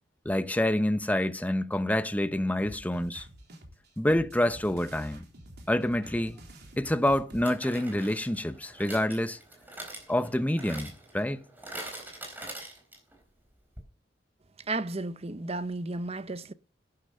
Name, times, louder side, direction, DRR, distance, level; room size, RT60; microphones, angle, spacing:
voice 1, 0.2-3.3 4.0-5.3 5.7-6.4 6.8-9.4 10.1-11.4, left 1 dB, 10° left, 0.8 m, -27 dB
sound 1, 2.6-7.4, right 1 dB, 60° right, 3.5 m, -48 dB
sound 2, 6.2-6.3 7.4-13.2 13.5-13.6 13.8-13.9, right 1 dB, 10° right, 4.2 m, -44 dB
voice 2, 14.7-16.5, right 2 dB, 35° right, 0.8 m, -33 dB
11.5 x 10.0 x 6.6 m
head